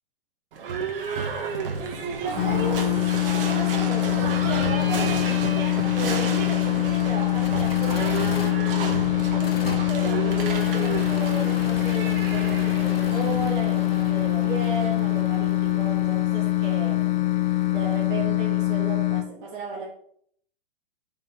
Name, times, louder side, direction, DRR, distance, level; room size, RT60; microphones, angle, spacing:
Livestock farm animals working animals / Bell, 0.5-16.4, right 5 dB, 70° right, 1.9 m, -32 dB
voice 1, 1.8-8.2 9.3-17.0 17.7-19.9, right 3 dB, 45° right, -8 dB, 3.0 m, -35 dB
sound 1, 2.4-19.2, left 17 dB, 60° left, 1.0 m, -24 dB
sound 2, 7.3-18.1, left 5 dB, 85° left, 1.2 m, -42 dB
7.8 x 5.8 x 3.9 m, 0.63 s
hypercardioid pair, 120°, 29 cm